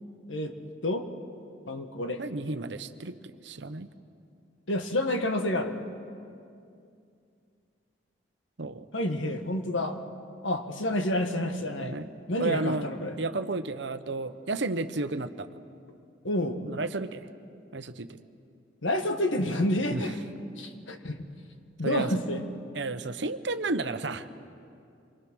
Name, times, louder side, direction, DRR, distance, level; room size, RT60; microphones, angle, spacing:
voice 1, 1.7-2.2 4.7-5.8 8.9-10.0 10.4-11.9 12.3-13.1 16.2-16.6 18.8-20.1 20.6-21.3 21.8-22.4, left 1 dB, 85° left, 6 dB, 1.7 m, -29 dB
voice 2, 2.2-3.9 8.6-8.9 11.8-12.1 12.4-12.9 13.2-15.5 16.7-17.3 17.7-18.2 19.9-20.0 21.8-22.1 22.7-24.3, right 3 dB, 65° right, 10 dB, 0.9 m, -32 dB
27.0 x 24.0 x 6.2 m, 2.5 s
head